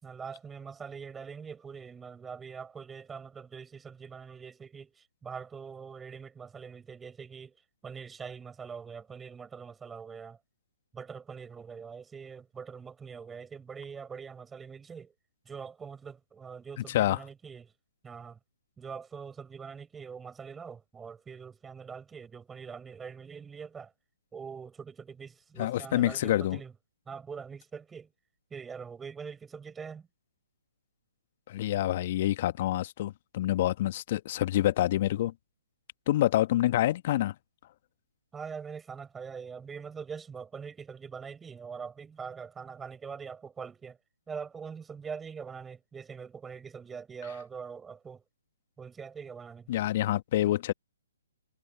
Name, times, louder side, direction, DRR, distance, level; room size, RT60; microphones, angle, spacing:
voice 1, 0.0-7.6 7.8-10.4 10.9-15.1 15.5-17.7 18.0-18.4 18.8-23.9 24.3-26.7 27.1-28.1 28.5-30.1 38.3-44.0 44.3-48.2 48.8-49.7, right 6 dB, 10° right, 7.3 m, -43 dB
voice 2, 16.9-17.2 25.6-26.6 31.5-35.3 36.1-37.3 49.7-50.7, left 14 dB, 40° left, 1.6 m, -27 dB
figure-of-eight pair, 130°, 0 cm